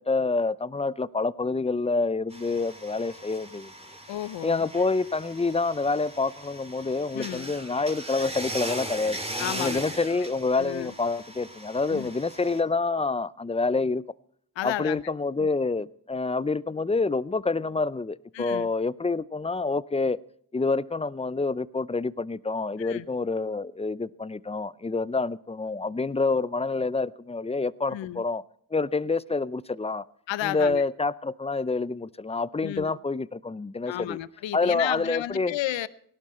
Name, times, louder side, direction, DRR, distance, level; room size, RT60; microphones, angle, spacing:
voice 1, 0.1-3.7 4.4-9.2 9.6-14.0 14.6-20.2 20.5-28.4 28.7-30.0 30.4-34.2 34.5-35.5, left 3 dB, 15° left, 19 dB, 0.6 m, -27 dB
sound 1, 2.3-12.6, right 1 dB, 15° right, 3.2 m, -39 dB
voice 2, 4.1-4.7 7.1-7.5 9.4-10.1 10.6-10.9 11.9-12.1 14.6-15.0 15.4-15.5 18.3-18.7 22.8-23.1 27.9-28.2 30.3-30.8 32.6-33.0 33.9-35.9, left 14 dB, 70° left, 17 dB, 0.8 m, -33 dB
17.5 x 11.5 x 4.4 m, 0.67 s
supercardioid pair, 45°, 46 cm